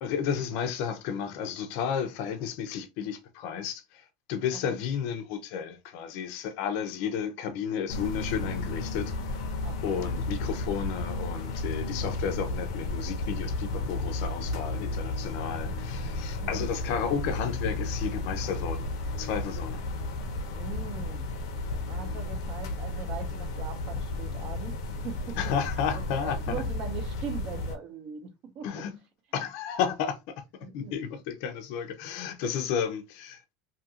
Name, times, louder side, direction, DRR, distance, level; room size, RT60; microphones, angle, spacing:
voice 1, 0.0-9.1 9.8-18.9 19.2-19.8 25.4-26.6 28.6-29.0 29.3-30.3 30.7-33.5, left 8 dB, 50° left, 0.5 m, -32 dB
sound 1, 7.9-27.7, left 2 dB, 90° left, 0.7 m, -33 dB
voice 2, 9.6-10.1 15.5-15.8 16.4-16.6 20.5-21.3 21.9-24.7 25.0-25.4 25.9-28.8 30.6-30.9 32.4-32.5, right 6 dB, 40° right, 0.6 m, -40 dB
2.7 x 2.4 x 2.7 m
supercardioid pair, 165°, 2 cm